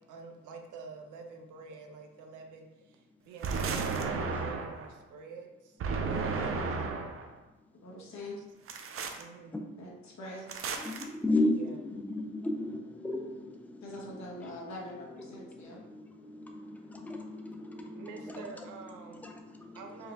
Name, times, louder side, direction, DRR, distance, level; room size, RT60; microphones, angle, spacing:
voice 1, 0.1-5.8 6.5-7.1 9.2-9.6 11.6-11.7 17.9-19.2 19.7-20.1, right 5 dB, 90° right, 3 dB, 0.6 m, -48 dB
sound 1, 3.4-4.9 5.8-7.3 8.7-9.2 10.5-11.0, right 4 dB, 45° right, 0.5 m, -33 dB
voice 2, 6.0-6.9 7.8-8.4 9.8-10.6 13.8-15.8, left 1 dB, 65° left, -2 dB, 1.2 m, -43 dB
voice 3, 7.5-8.2 8.8-9.8 10.7-20.1, left 2 dB, 5° left, 3 dB, 0.5 m, -36 dB
4.6 x 2.2 x 3.4 m, 1.1 s
cardioid pair, 90°, 30 cm